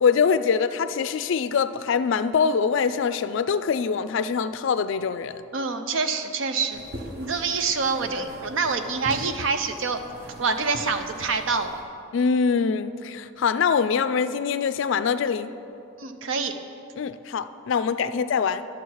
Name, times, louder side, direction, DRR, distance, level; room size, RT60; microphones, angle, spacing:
voice 1, 0.0-5.4 12.1-15.5 17.0-18.7, left 6 dB, 65° left, 12 dB, 0.3 m, -24 dB
voice 2, 5.5-6.8 7.2-10.0 10.4-11.8 16.0-16.5 18.0-18.1, right 4 dB, 70° right, 8 dB, 0.6 m, -26 dB
sound 1, 6.7-11.8, equal, 45° right, 1.2 m, -42 dB
11.0 x 6.9 x 4.7 m, 2.7 s
head